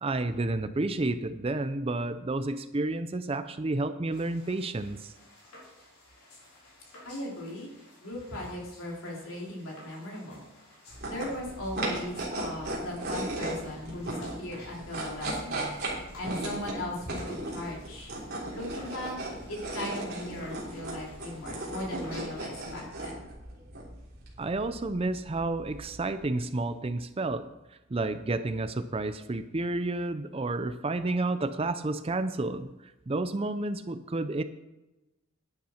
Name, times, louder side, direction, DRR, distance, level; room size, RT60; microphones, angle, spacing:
voice 1, 0.0-5.1 24.4-27.5 27.9-34.4, right 2 dB, 25° right, 11 dB, 0.4 m, -30 dB
sound 1, 4.1-22.9, left 1 dB, 85° left, 4.6 m, -54 dB
voice 2, 7.0-7.7 8.0-10.4 11.0-15.7 16.2-18.1 18.5-19.2 19.5-23.2, left 1 dB, 65° left, -2 dB, 3.6 m, -38 dB
sound 2, 10.9-26.2, right 1 dB, 45° right, 3.5 m, -37 dB
11.5 x 10.5 x 4.4 m, 0.98 s
head